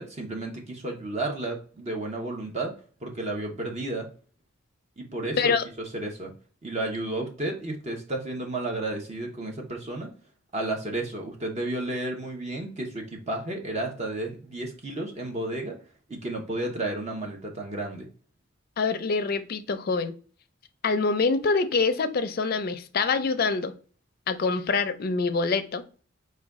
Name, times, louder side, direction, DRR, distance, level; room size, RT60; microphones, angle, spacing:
voice 1, 0.0-2.7 3.0-4.1 5.0-5.5 5.9-6.3 6.6-10.1 10.5-15.7 16.1-18.1, right 2 dB, 35° right, 1 dB, 0.8 m, -32 dB
voice 2, 18.8-20.1 20.8-23.7 24.3-25.8, left 4 dB, 50° left, 10 dB, 0.5 m, -25 dB
4.8 x 2.2 x 3.5 m, 0.39 s
head